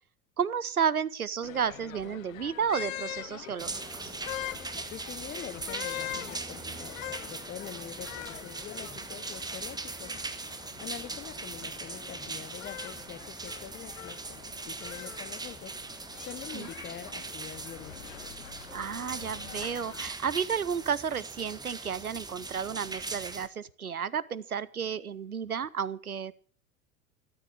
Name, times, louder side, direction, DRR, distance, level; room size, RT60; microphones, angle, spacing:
voice 1, 0.4-4.1 16.5-16.7 18.7-26.3, right 7 dB, 90° right, 20 dB, 0.7 m, -32 dB
sound 1, 1.4-20.1, left 12 dB, 70° left, 0.7 m, -44 dB
sound 2, 3.6-23.5, right 3 dB, 10° right, 1.2 m, -40 dB
voice 2, 4.9-10.2 10.8-15.8 16.2-18.3, left 10 dB, 25° left, 14 dB, 0.8 m, -45 dB
13.0 x 12.0 x 6.2 m, 0.44 s
figure-of-eight pair, 80°, 42 cm